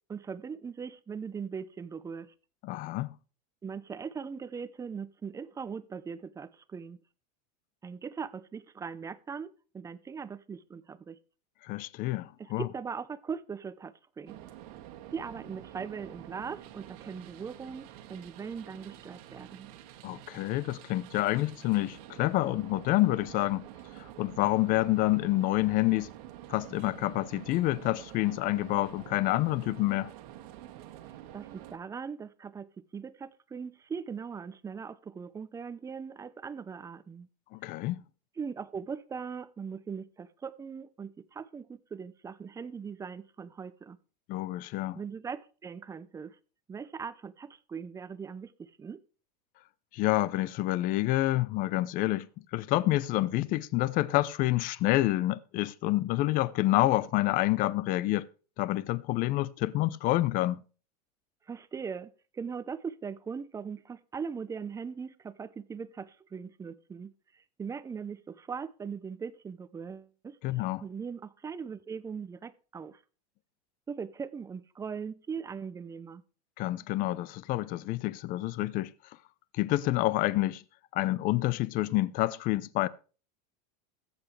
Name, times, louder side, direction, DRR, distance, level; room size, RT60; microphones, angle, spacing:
voice 1, 0.1-2.3 3.6-7.0 7.8-11.2 12.4-14.4 15.1-19.7 31.3-37.3 38.4-44.0 44.9-46.4 46.7-49.0 61.5-70.4 70.8-73.0 73.9-76.2, right 6 dB, 15° right, 0.8 m, -40 dB
voice 2, 2.6-3.1 11.6-12.7 20.0-23.7 24.0-26.1 26.5-30.1 37.5-38.0 44.3-45.0 49.9-52.3 52.5-58.3 58.6-60.6 70.4-70.8 76.6-78.9 79.5-80.6 80.9-82.9, left 17 dB, 45° left, 0.7 m, -28 dB
sound 1, 14.3-31.8, right 12 dB, 65° right, 1.9 m, -48 dB
21.5 x 7.8 x 3.3 m
supercardioid pair, 135°, 20 cm